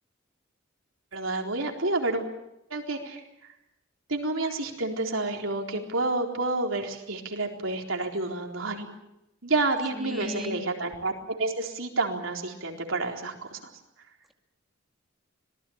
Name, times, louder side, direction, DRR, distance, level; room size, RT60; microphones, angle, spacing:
voice 1, 1.1-2.2 2.7-3.2 4.1-8.9 9.4-13.7, right 2 dB, 90° right, 2 dB, 4.0 m, -29 dB
voice 2, 9.9-10.6, left 1 dB, ahead, 3 dB, 2.3 m, -35 dB
26.0 x 19.0 x 8.8 m, 0.88 s
head